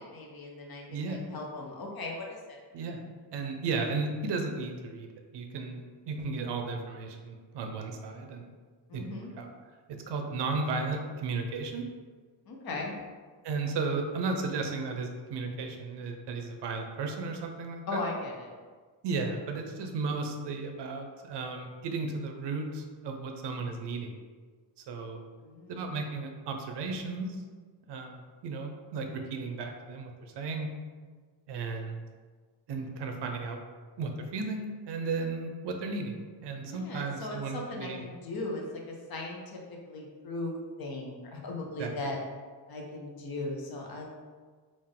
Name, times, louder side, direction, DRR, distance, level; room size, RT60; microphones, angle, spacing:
voice 1, 0.0-2.6 8.9-9.3 12.5-13.0 17.9-18.5 25.4-25.8 36.7-39.6 39.9-42.2 42.7-44.1, left 2 dB, 60° left, 0 dB, 0.7 m, -38 dB
voice 2, 0.9-1.2 2.7-3.0 3.3-5.1 5.3-8.5 8.9-9.5 10.1-11.8 13.4-18.0 19.0-24.1 24.9-25.2 25.7-27.3 27.9-30.7 31.5-32.0 32.7-33.6 34.0-38.0 41.8-41.9, right 4 dB, 75° right, 4 dB, 0.5 m, -34 dB
3.6 x 2.5 x 3.6 m, 1.5 s
wide cardioid pair, 170°, 42 cm